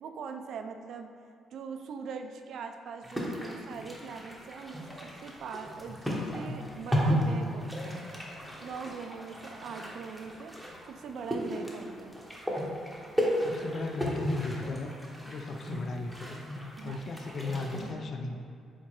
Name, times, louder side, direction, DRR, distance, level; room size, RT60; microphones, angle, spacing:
voice 1, 0.0-1.1 1.5-8.1 8.6-12.1 16.8-17.0, right 5 dB, 70° right, 6 dB, 0.3 m, -41 dB
sound 1, 3.0-17.9, equal, ahead, 0.8 m, -34 dB
voice 2, 13.4-14.9 15.2-18.4, left 3 dB, 55° left, 4 dB, 0.4 m, -37 dB
4.5 x 3.6 x 2.9 m, 2.3 s
cardioid pair, 90°, 0 cm